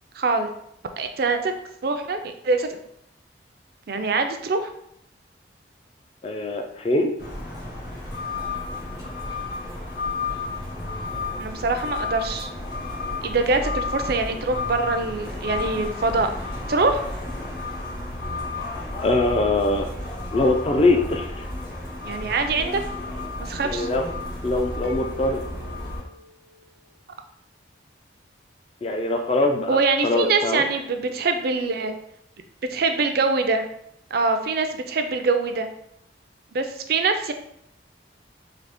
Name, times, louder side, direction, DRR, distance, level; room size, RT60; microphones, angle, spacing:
voice 1, 0.2-0.5 1.0-1.5 1.8-2.8 3.9-4.7 11.4-12.5 13.2-16.3 16.7-17.0 22.0-22.8 23.4-23.9 29.7-31.9 32.7-33.6 34.1-35.7 36.5-37.3, right 3 dB, 55° right, 7 dB, 0.4 m, -24 dB
voice 2, 6.2-7.1 19.0-19.9 20.3-21.5 23.6-24.0 24.4-25.4 28.8-30.6, left 2 dB, 30° left, 4 dB, 0.3 m, -22 dB
sound 1, 7.2-26.0, left 2 dB, 55° left, 1.2 m, -32 dB
sound 2, 24.8-26.8, left 3 dB, 75° left, 0.7 m, -41 dB
3.9 x 2.8 x 3.4 m, 0.74 s
head